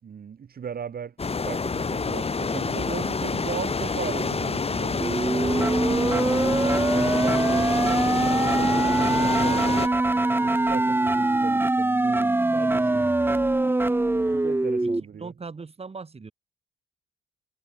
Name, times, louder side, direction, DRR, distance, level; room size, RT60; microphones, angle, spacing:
voice 1, 0.0-1.1 1.4-5.3 5.9-9.7 10.3-13.1 14.3-15.3, right 7 dB, 50° right, 4.7 m, -37 dB
sound 1, 1.2-9.9, left 4 dB, 30° left, 3.3 m, -27 dB
sound 2, 5.0-15.0, right 2 dB, 10° right, 0.9 m, -23 dB
voice 2, 15.2-16.3, right 4 dB, 30° right, 7.2 m, -39 dB
cardioid pair, 90°, 20 cm